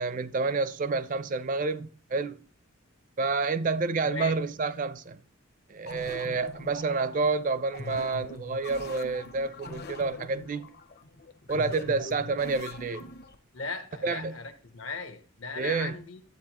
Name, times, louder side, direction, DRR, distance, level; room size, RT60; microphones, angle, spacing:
voice 1, 0.0-2.4 3.2-5.2 5.7-10.7 11.5-13.1 14.0-14.4 15.6-15.9, right 4 dB, 40° right, 0.4 m, -29 dB
voice 2, 4.0-4.4 13.5-16.2, left 4 dB, 70° left, 1.1 m, -37 dB
sound 1, 5.8-13.4, left 2 dB, 50° left, 0.8 m, -42 dB
12.0 x 8.1 x 3.0 m
head